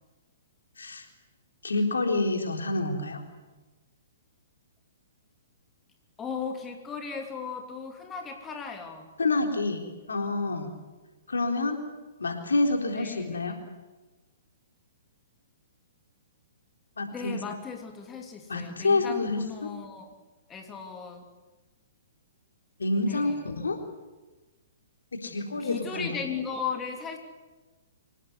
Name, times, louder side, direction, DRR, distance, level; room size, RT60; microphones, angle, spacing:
voice 1, 1.6-3.2 9.2-9.8 10.1-10.7 11.3-11.8 12.2-13.6 17.0-17.4 18.5-19.7 22.8-23.8 25.2-26.2, left 2 dB, 75° left, 4 dB, 3.8 m, -28 dB
voice 2, 6.2-9.1 12.9-13.7 17.1-20.1 20.5-21.2 23.0-23.5 25.6-27.2, left 6 dB, 15° left, 3 dB, 3.2 m, -37 dB
26.0 x 18.5 x 9.7 m, 1.2 s
figure-of-eight pair, 120°, 0 cm